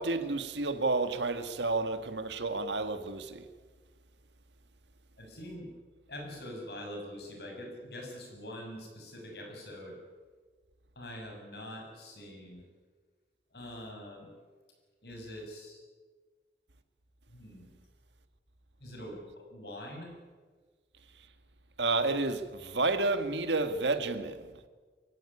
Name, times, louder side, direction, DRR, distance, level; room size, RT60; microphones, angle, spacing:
voice 1, 0.0-3.5 21.8-24.4, right 3 dB, 80° right, 1.8 m, -30 dB
voice 2, 5.2-5.7 6.1-10.0 10.9-12.6 13.5-14.3 15.0-15.8 17.3-17.7 18.8-20.1, left 1 dB, 65° left, 6.6 m, -44 dB
23.5 x 16.0 x 9.9 m
head